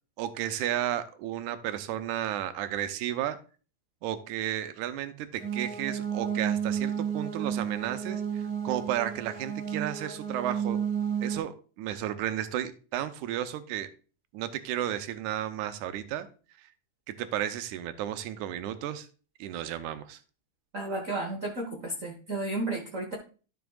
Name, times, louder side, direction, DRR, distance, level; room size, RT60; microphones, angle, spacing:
voice 1, 0.2-3.4 4.0-10.8 11.2-13.9 14.3-16.3 17.1-19.1 19.4-20.2, right 11 dB, 85° right, 10 dB, 2.1 m, -33 dB
sound 1, 5.4-11.4, right 8 dB, 40° right, 1.4 m, -32 dB
voice 2, 20.7-23.1, right 2 dB, 60° right, 0 dB, 0.8 m, -33 dB
13.0 x 6.1 x 2.4 m, 0.36 s
omnidirectional pair, 3.6 m